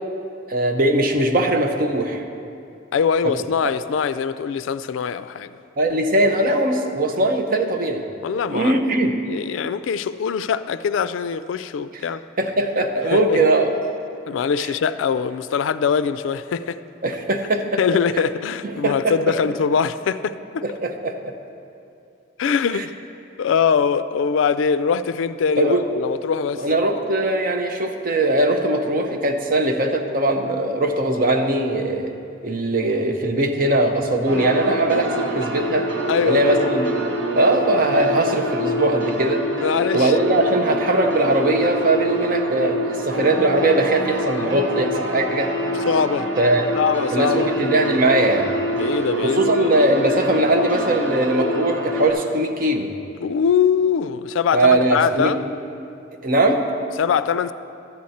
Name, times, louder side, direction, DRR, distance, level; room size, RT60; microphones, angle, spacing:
voice 1, 0.5-2.2 3.2-3.3 5.8-8.1 8.5-9.3 12.4-13.7 17.0-17.8 18.6-19.2 20.6-21.3 22.7-22.8 25.6-25.8 26.5-32.1 32.4-35.9 36.3-36.9 37.3-39.5 39.9-45.5 46.4-46.9 47.1-48.5 49.2-52.9 54.5-55.3 56.2-56.6, right 1 dB, 45° right, 0.7 m, -20 dB
voice 2, 2.9-5.6 8.2-8.8 9.3-12.2 13.1-13.5 14.3-16.8 17.8-20.8 22.4-22.9 23.4-26.7 36.1-36.8 39.6-40.1 45.9-46.3 46.8-47.5 48.8-49.7 53.2-55.4 57.0-57.5, left 6 dB, 80° left, 0.3 m, -22 dB
sound 1, 34.3-52.1, right 1 dB, 70° right, 1.3 m, -26 dB
12.0 x 4.2 x 7.7 m
head